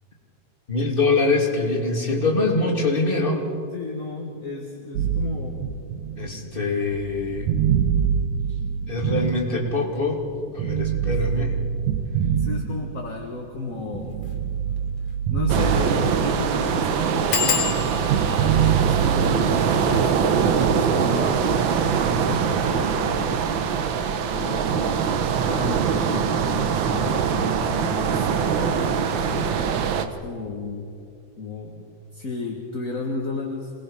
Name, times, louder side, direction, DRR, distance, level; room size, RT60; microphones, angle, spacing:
voice 1, 0.7-3.4 6.2-7.5 8.9-10.2 10.5-11.6, left 3 dB, 20° left, 0 dB, 2.6 m, -23 dB
voice 2, 3.7-5.7 12.3-14.2 15.3-18.1 18.7-21.6 22.0-23.8 24.3-30.9 31.4-31.8 32.1-33.7, left 3 dB, 35° left, 0 dB, 1.6 m, -33 dB
sound 1, 5.0-10.0 10.6-13.3 13.7-16.6 16.8-19.5, right 8 dB, 85° right, 2.5 m, -25 dB
sound 2, 14.1-14.3 14.8-14.9 15.1-15.2 15.7-16.0 16.2-16.3 17.3-22.6 23.3-23.8 24.1-24.4 24.7-24.8, left 8 dB, 65° left, 3.3 m, -32 dB
sound 3, 15.5-30.1, right 7 dB, 70° right, 1.1 m, -23 dB
26.0 x 19.5 x 5.7 m, 2.5 s
omnidirectional pair, 3.4 m